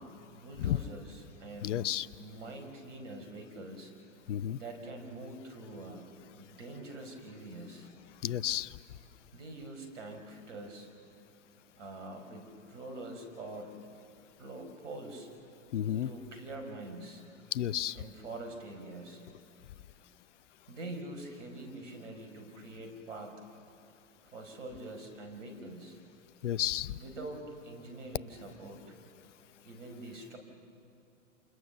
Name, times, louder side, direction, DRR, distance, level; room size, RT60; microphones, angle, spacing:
voice 1, 0.0-1.9 2.2-3.9 4.5-6.0 6.4-7.9 9.3-10.9 11.8-13.7 14.4-15.3 16.0-17.2 17.9-19.2 20.7-23.4 24.3-26.0 26.9-28.9 29.6-30.4, right 2 dB, 70° right, 5 dB, 5.1 m, -45 dB
voice 2, 1.6-2.1 4.3-4.6 8.2-8.8 15.7-16.1 17.5-18.0 26.4-27.0, left 11 dB, 65° left, 19 dB, 0.7 m, -32 dB
28.5 x 27.5 x 7.0 m, 2.6 s
hypercardioid pair, 105°, 39 cm